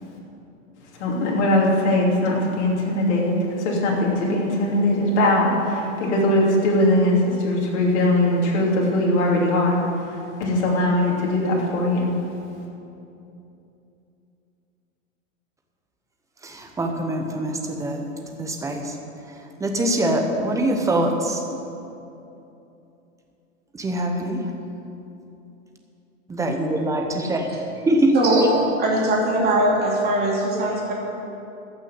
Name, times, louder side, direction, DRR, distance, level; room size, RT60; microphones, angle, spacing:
voice 1, 1.0-9.8 10.4-12.2, left 1 dB, 55° left, -3 dB, 3.1 m, -20 dB
voice 2, 16.4-18.0 18.4-18.9 19.6-21.4 23.7-24.4 26.3-27.5 27.9-28.2, right 1 dB, 10° right, 3 dB, 0.8 m, -23 dB
voice 3, 28.1-30.9, right 1 dB, 25° right, -4 dB, 2.9 m, -21 dB
14.0 x 6.3 x 7.9 m, 2.9 s
hypercardioid pair, 145°, 40 cm